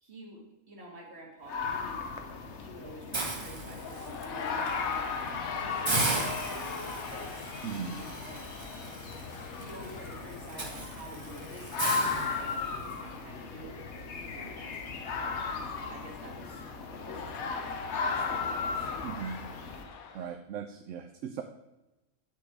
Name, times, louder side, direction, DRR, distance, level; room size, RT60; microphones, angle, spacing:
voice 1, 0.0-2.0 2.5-7.6 7.9-8.7 9.6-16.6 16.9-18.9, right 1 dB, 50° right, -1 dB, 2.2 m, -48 dB
sound 1, 1.5-19.8, left 4 dB, 60° left, 1.1 m, -37 dB
Hiss, 3.1-4.2 4.7-4.9 5.3-5.4 5.9-12.9, right 2 dB, 25° right, 0.9 m, -36 dB
sound 2, 3.7-20.3, left 5 dB, 85° left, 1.3 m, -41 dB
voice 2, 7.6-8.0 19.0-19.4 20.1-21.4, right 7 dB, 70° right, 7 dB, 0.9 m, -38 dB
8.6 x 6.0 x 4.7 m, 1.0 s
omnidirectional pair, 1.5 m